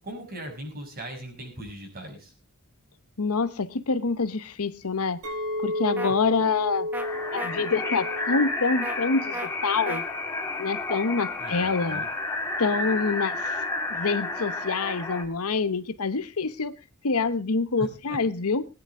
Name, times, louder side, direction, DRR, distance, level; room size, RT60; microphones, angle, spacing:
voice 1, 0.0-2.3 6.1-6.4 11.4-12.1 17.8-18.2, right 1 dB, 40° right, 6.3 m, -39 dB
voice 2, 3.2-5.2 5.6-6.9 7.3-10.0 10.6-12.0 12.6-13.4 13.9-16.7 17.0-18.7, left 4 dB, 75° left, 0.9 m, -26 dB
Chink clink, 5.2-9.6 9.9-10.4, left 1 dB, 80° right, 5.4 m, -33 dB
sound 1, 6.0-6.1 6.9-7.1 7.4-7.5 8.8-9.0 9.3-9.5 9.9-10.0, right 1 dB, 10° right, 1.3 m, -33 dB
sound 2, 7.0-15.2, left 2 dB, 10° left, 2.2 m, -31 dB
21.0 x 10.0 x 3.6 m
head